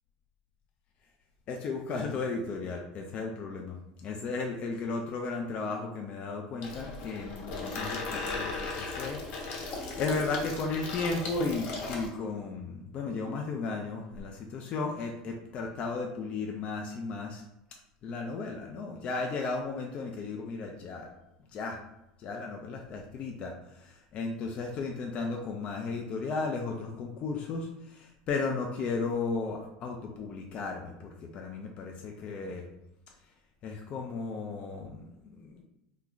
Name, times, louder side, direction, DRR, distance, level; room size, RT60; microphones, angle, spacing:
voice 1, 1.5-17.4 18.0-21.1 21.5-21.8 22.2-32.7 33.6-35.6, left 4 dB, 40° left, 1 dB, 0.4 m, -35 dB
Water tap faucet / Sink (filling or washing), 6.6-12.1, left 3 dB, 55° left, 0.9 m, -37 dB
3.0 x 2.3 x 3.8 m, 0.87 s
supercardioid pair, 130°, 3 cm